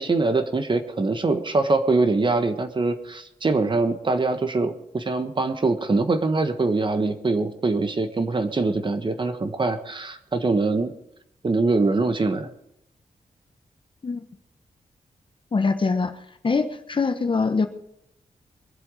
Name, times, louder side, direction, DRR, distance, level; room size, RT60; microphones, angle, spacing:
voice 1, 0.0-10.9 11.4-12.5, right 3 dB, 35° right, 9 dB, 1.3 m, -23 dB
voice 2, 15.5-16.2 16.4-17.7, left 4 dB, 40° left, 8 dB, 1.1 m, -23 dB
23.0 x 7.8 x 5.0 m, 0.76 s
wide cardioid pair, 105°, 14 cm